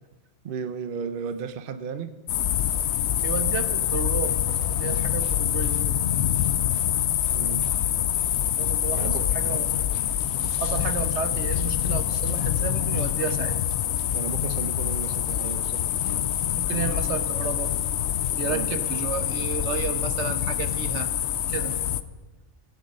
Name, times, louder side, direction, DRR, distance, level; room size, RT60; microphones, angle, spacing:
voice 1, 0.4-2.1 7.3-7.6 8.9-9.2 9.5-9.6 14.1-15.8 18.5-18.7, right 6 dB, 55° right, 10 dB, 0.8 m, -34 dB
sound 1, 2.3-22.0, left 11 dB, 80° left, 0.9 m, -25 dB
voice 2, 3.2-4.4 4.7-5.9 8.6-9.7 10.6-13.6 16.5-17.7 18.4-21.1 21.5-21.8, right 6 dB, 80° right, 9 dB, 1.2 m, -32 dB
17.0 x 9.3 x 5.4 m, 1.2 s
omnidirectional pair, 1.2 m